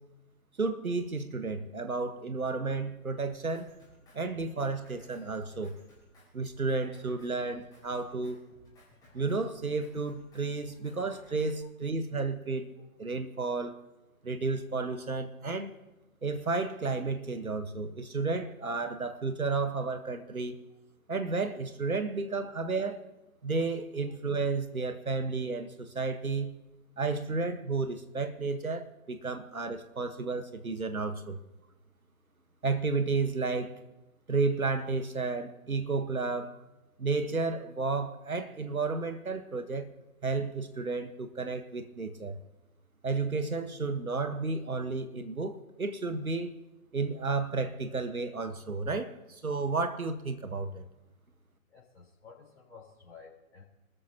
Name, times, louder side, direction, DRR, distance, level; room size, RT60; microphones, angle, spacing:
voice 1, 0.6-3.7 4.1-5.7 6.3-8.4 9.1-12.7 13.0-13.8 14.2-15.7 16.2-20.6 21.1-23.0 23.4-26.5 27.0-31.4 32.6-33.7 34.3-36.6 37.0-39.9 40.2-42.4 43.0-46.5 46.9-50.9, right 3 dB, 75° right, 1.6 m, -32 dB
Drum kit, 3.3-11.6, left 1 dB, 10° left, 5.7 m, -60 dB
voice 2, 51.7-53.6, left 5 dB, 50° left, 4.4 m, -53 dB
26.5 x 13.5 x 3.0 m
figure-of-eight pair, 130°, 43 cm